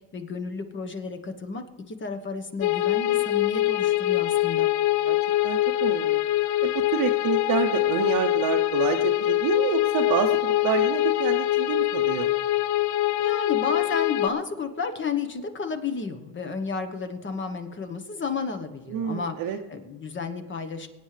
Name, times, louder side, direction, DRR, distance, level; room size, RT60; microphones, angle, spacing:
voice 1, 0.1-4.7 13.2-19.4 19.7-20.9, left 5 dB, 30° left, 8 dB, 1.2 m, -32 dB
sound 1, 2.6-14.3, left 15 dB, 75° left, 0.5 m, -24 dB
voice 2, 5.4-6.2 6.6-12.3 18.9-19.6, right 8 dB, 55° right, 2 dB, 0.8 m, -28 dB
23.0 x 9.2 x 3.3 m, 1.2 s
cardioid pair, 110°, 40 cm